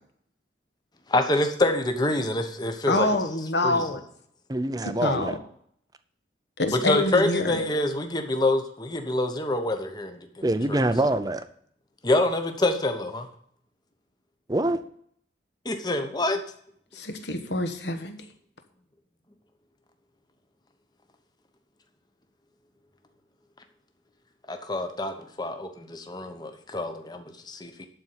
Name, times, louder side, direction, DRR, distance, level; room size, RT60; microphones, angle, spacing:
voice 1, 1.1-3.1 3.6-4.0 6.7-10.8 12.0-13.3 15.6-16.4 24.5-27.9, left 2 dB, 20° left, 6 dB, 1.0 m, -26 dB
voice 2, 2.9-4.0 4.8-5.4 6.6-7.6 16.9-18.2, left 2 dB, 65° left, 7 dB, 1.3 m, -26 dB
voice 3, 4.5-5.4 10.4-11.4 14.5-14.8, right 1 dB, 20° right, 11 dB, 0.6 m, -25 dB
11.5 x 4.3 x 8.1 m, 0.65 s
head